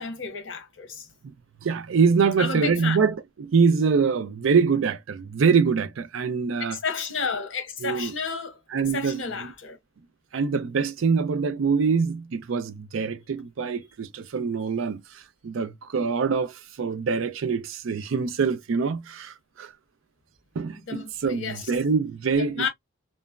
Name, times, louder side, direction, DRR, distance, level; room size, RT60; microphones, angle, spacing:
voice 1, 0.0-1.1 2.4-3.0 6.7-8.6 8.9-9.8 20.9-21.6 22.6-22.7, left 5 dB, 65° left, 1.1 m, -31 dB
voice 2, 1.6-6.8 7.8-8.1 8.7-9.2 10.3-15.0 15.4-19.7 20.6-22.7, right 5 dB, 75° right, 0.4 m, -24 dB
3.0 x 2.0 x 2.3 m
head